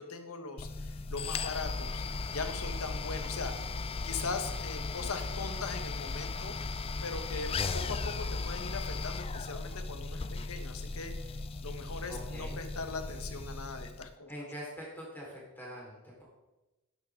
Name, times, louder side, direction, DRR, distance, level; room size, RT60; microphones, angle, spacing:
voice 1, 0.0-2.0 2.3-3.5 4.0-6.5 7.0-14.3, left 4 dB, 75° left, 7 dB, 1.4 m, -40 dB
sound 1, 0.6-14.1, left 4 dB, 25° left, 0.4 m, -37 dB
voice 2, 12.1-12.6 14.3-16.2, equal, 10° left, -5 dB, 4.5 m, -44 dB
12.0 x 10.5 x 3.8 m, 1.0 s
head